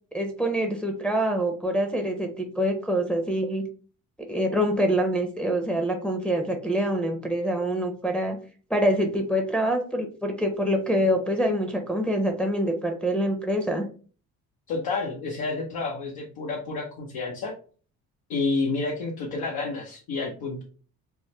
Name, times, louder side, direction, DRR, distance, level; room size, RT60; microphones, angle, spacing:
voice 1, 0.1-3.6 4.3-8.4 8.7-13.8, equal, 5° left, 2 dB, 0.7 m, -25 dB
voice 2, 14.7-17.5 18.3-20.6, left 3 dB, 75° left, -2 dB, 0.8 m, -29 dB
3.5 x 2.1 x 2.9 m, 0.39 s
supercardioid pair, 70°, 37 cm